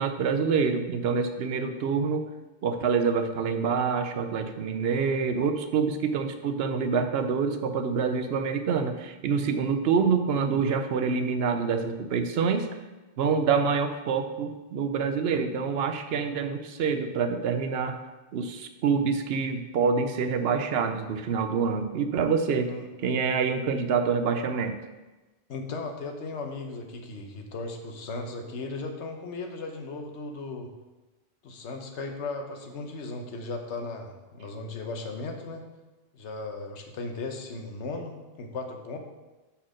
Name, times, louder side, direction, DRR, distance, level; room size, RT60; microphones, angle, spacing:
voice 1, 0.0-2.3 2.6-12.7 13.2-18.0 18.3-22.7 23.0-24.8, right 5 dB, 70° right, 7 dB, 0.8 m, -26 dB
voice 2, 25.5-30.7 31.4-35.6 36.1-39.0, left 3 dB, 90° left, 4 dB, 1.1 m, -36 dB
5.6 x 4.3 x 6.2 m, 1.1 s
omnidirectional pair, 1.1 m